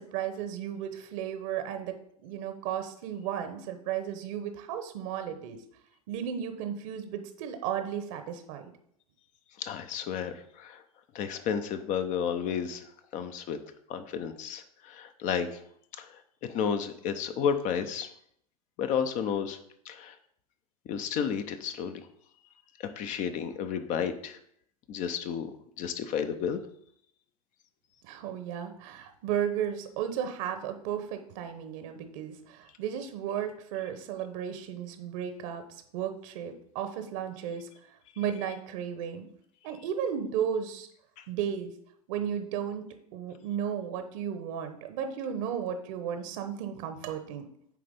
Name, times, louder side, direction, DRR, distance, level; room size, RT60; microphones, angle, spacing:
voice 1, 0.0-2.0 2.2-5.6 6.1-8.7 28.0-37.7 38.2-39.3 39.6-40.9 41.3-41.7 42.1-42.9 43.1-47.5, right 9 dB, 55° right, 8 dB, 1.0 m, -34 dB
voice 2, 9.6-10.8 11.1-12.8 13.1-13.6 13.9-15.6 16.0-18.1 18.8-19.6 19.9-20.1 20.9-22.0 22.8-24.4 24.9-25.5 25.8-26.6, left 7 dB, 40° left, 9 dB, 0.7 m, -32 dB
8.6 x 3.3 x 5.2 m, 0.69 s
hypercardioid pair, 95°, 20 cm